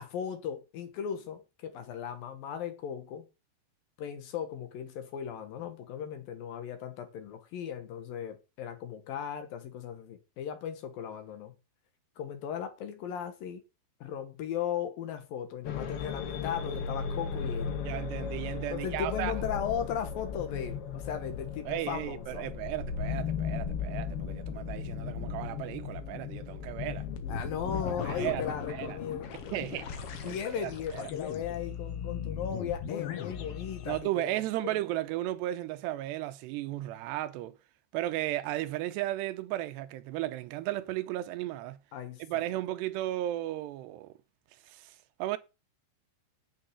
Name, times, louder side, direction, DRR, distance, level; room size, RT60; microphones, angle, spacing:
voice 1, 0.0-3.3 4.0-11.5 12.2-13.6 14.0-17.8 18.7-22.5 27.3-29.3 30.2-34.3 34.6-34.8 41.9-42.2, left 8 dB, 65° left, 2.9 m, -37 dB
sound 1, 15.6-34.0, left 6 dB, 90° left, 1.3 m, -37 dB
voice 2, 17.9-19.3 21.7-27.1 28.0-29.0 29.5-29.9 30.2-31.0 33.9-37.6 37.9-41.8 42.2-44.1 44.7-45.4, right 15 dB, 80° right, 2.8 m, -35 dB
8.7 x 6.4 x 8.1 m
omnidirectional pair, 4.9 m